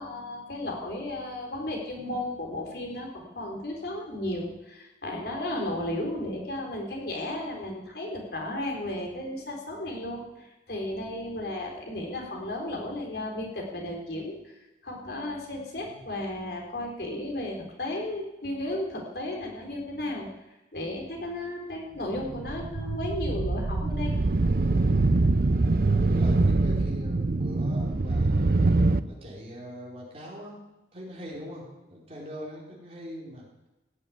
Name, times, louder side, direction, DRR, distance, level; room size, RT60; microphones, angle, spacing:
voice 1, 0.0-14.5 14.8-20.3 20.7-24.1, left 1 dB, 65° left, 0 dB, 3.7 m, -34 dB
sound 1, 22.1-29.0, right 2 dB, 55° right, 0.6 m, -24 dB
voice 2, 26.1-28.6 29.0-30.6 30.9-33.5, equal, 35° right, -3 dB, 4.5 m, -41 dB
16.5 x 7.7 x 9.7 m, 1.0 s
head